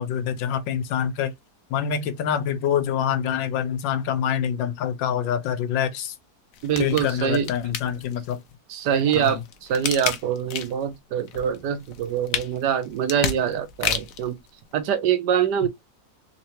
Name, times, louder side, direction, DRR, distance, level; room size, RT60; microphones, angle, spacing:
voice 1, 0.0-1.3 1.7-6.1 6.8-8.4 9.1-9.4, left 8 dB, 85° left, 1.4 m, -26 dB
sound 1, 6.5-8.3 8.9-10.9 11.3-14.3 14.8-14.9, left 8 dB, 65° left, 0.9 m, -31 dB
voice 2, 6.6-7.5 8.7-14.4 14.7-15.7, right 8 dB, 70° right, 1.2 m, -24 dB
3.7 x 3.1 x 2.8 m
omnidirectional pair, 2.0 m